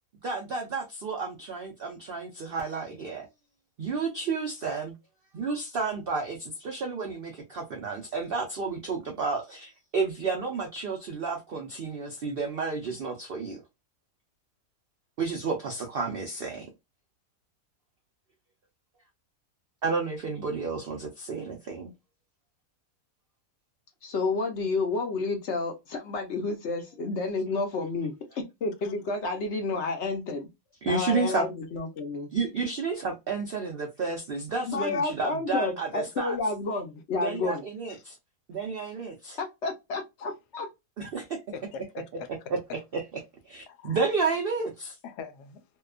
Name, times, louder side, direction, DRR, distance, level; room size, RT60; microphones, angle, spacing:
voice 1, 0.2-3.3 3.8-4.9 5.3-13.6 15.2-16.7 19.8-21.9 30.8-31.5 32.3-36.4 37.2-38.1 38.5-39.4 41.0-41.4 42.9-43.0 43.4-45.0, right 4 dB, 85° right, 0.5 m, -31 dB
voice 2, 24.0-30.5 30.8-32.3 34.7-37.6 39.4-40.7, left 3 dB, 55° left, 0.9 m, -30 dB
voice 3, 41.5-42.3 43.7-44.0 45.0-45.6, left 6 dB, 80° left, 1.1 m, -42 dB
2.8 x 2.2 x 2.3 m
omnidirectional pair, 1.7 m